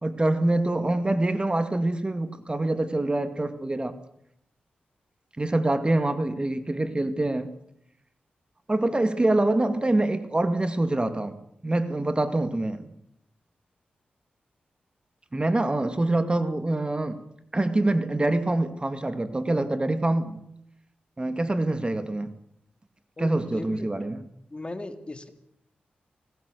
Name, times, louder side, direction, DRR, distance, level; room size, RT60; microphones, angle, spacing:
voice 1, 0.0-4.0 5.4-7.5 8.7-11.4 11.6-12.8 15.3-17.2 17.5-20.4 21.2-22.3 23.2-24.3, right 2 dB, 25° right, 10 dB, 2.2 m, -25 dB
voice 2, 23.2-23.9 24.5-25.3, left 2 dB, 30° left, 8 dB, 2.9 m, -37 dB
25.0 x 18.5 x 6.9 m, 0.76 s
cardioid pair, 50°, 4 cm